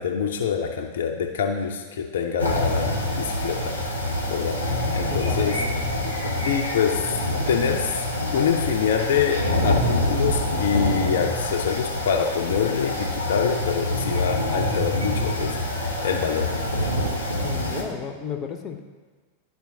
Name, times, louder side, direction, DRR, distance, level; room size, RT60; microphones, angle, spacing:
voice 1, 0.0-3.7 4.3-4.6 4.9-6.0 6.4-7.0 7.5-8.0 8.3-15.6 16.0-16.5, left 7 dB, 60° left, 2 dB, 0.6 m, -25 dB
sound 1, 2.4-17.8, left 1 dB, 90° right, 1.1 m, -26 dB
voice 2, 5.1-5.9 17.4-18.8, left 7 dB, 30° left, 5 dB, 0.8 m, -33 dB
11.5 x 4.4 x 2.7 m, 1.4 s
figure-of-eight pair, 90°, 0 cm